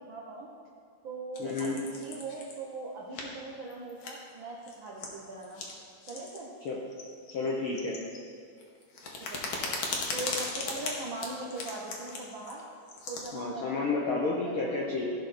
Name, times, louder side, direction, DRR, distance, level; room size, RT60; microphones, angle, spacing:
voice 1, 0.1-0.5 1.0-5.6 6.1-6.5 9.2-12.6 13.1-14.8, right 2 dB, 75° right, -5 dB, 1.1 m, -41 dB
sound 1, 1.3-2.6 3.1-3.3 3.7-4.3 4.6-5.1 5.4-5.7 6.0-6.4 6.7-8.3 8.6-13.3, left 3 dB, 60° left, 1.4 m, -38 dB
voice 2, 1.4-1.8 6.6-6.8 7.3-8.0 13.3-15.1, left 3 dB, 80° left, -2 dB, 1.2 m, -31 dB
15.0 x 5.1 x 4.2 m, 2.2 s
omnidirectional pair, 3.6 m